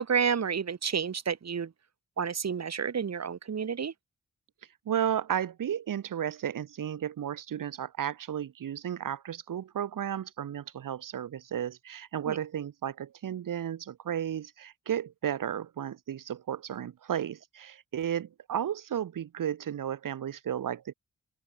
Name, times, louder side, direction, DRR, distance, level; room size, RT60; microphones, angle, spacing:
voice 1, 0.0-1.7 2.2-3.9 12.3-12.4, right 7 dB, 50° right, 1.7 m, -30 dB
voice 2, 4.9-20.9, right 9 dB, 75° right, 1.9 m, -33 dB
open air
supercardioid pair, 45°, 33 cm